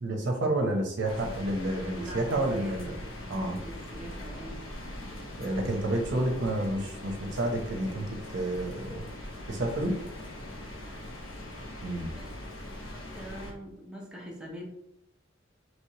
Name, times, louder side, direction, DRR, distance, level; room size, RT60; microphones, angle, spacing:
voice 1, 0.0-3.0 3.3-3.6 5.4-9.1 9.5-9.9 11.8-12.1, right 1 dB, 65° right, 1 dB, 0.7 m, -30 dB
sound 1, 1.0-13.5, left 1 dB, 85° left, 0.9 m, -41 dB
voice 2, 2.0-3.0 3.6-4.6 10.8-11.0 12.1-14.7, equal, 5° right, -3 dB, 0.8 m, -43 dB
3.1 x 3.1 x 2.8 m, 0.77 s
head